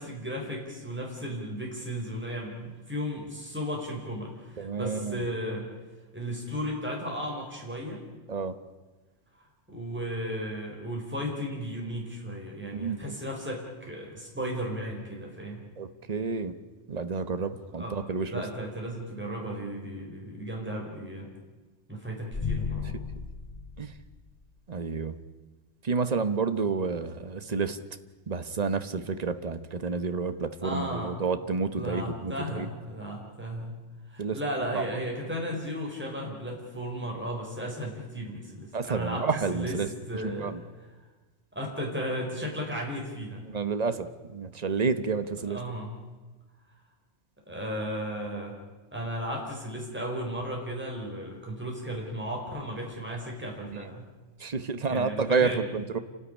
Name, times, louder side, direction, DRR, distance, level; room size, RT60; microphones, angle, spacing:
voice 1, 0.0-5.7 6.1-8.0 9.7-15.6 17.7-18.0 18.3-21.3 21.9-23.0 30.6-31.2 31.7-33.8 34.1-39.8 40.1-40.9 41.5-43.4 45.4-46.0 47.5-48.6 48.9-54.1 54.9-55.6, equal, 10° right, -1 dB, 4.3 m, -35 dB
voice 2, 4.6-5.2 8.3-8.5 12.7-13.1 15.8-16.5 16.9-18.4 23.8-23.9 24.7-25.2 25.8-27.8 28.3-32.7 34.2-34.4 34.7-34.8 38.7-39.9 40.4-40.6 43.5-45.6 54.4-56.0, right 5 dB, 35° right, 10 dB, 1.2 m, -30 dB
sound 1, 22.3-24.6, left 6 dB, 25° left, 0.9 m, -35 dB
29.0 x 12.5 x 9.9 m, 1.3 s
omnidirectional pair, 1.3 m